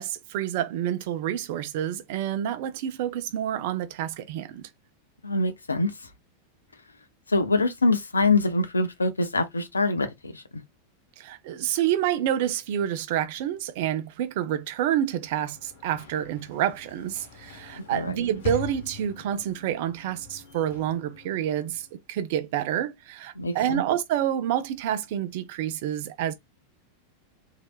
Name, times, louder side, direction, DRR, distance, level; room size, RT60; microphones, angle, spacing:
voice 1, 0.0-4.7 11.2-26.3, right 11 dB, 50° right, 0.5 m, -28 dB
voice 2, 5.2-6.1 7.3-10.6 17.9-18.2 23.4-23.8, left 3 dB, 80° left, 0.5 m, -25 dB
Sliding door / Slam, 15.0-22.0, left 6 dB, 55° left, 0.9 m, -42 dB
3.2 x 2.7 x 2.2 m
figure-of-eight pair, 90°, 0 cm